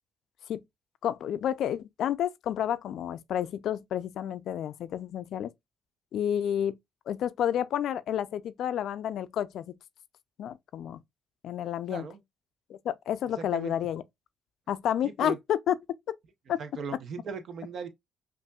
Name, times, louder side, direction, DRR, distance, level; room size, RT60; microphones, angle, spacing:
voice 1, 1.0-5.5 6.1-6.8 7.1-9.8 10.4-11.0 11.4-12.0 12.7-14.0 14.7-15.8 16.5-16.6, left 10 dB, 75° left, 0.3 m, -30 dB
voice 2, 11.9-12.2 13.4-13.7 15.0-15.4 16.6-17.9, right 5 dB, 60° right, 0.7 m, -38 dB
5.3 x 2.5 x 2.3 m
cardioid pair, 90°, 0 cm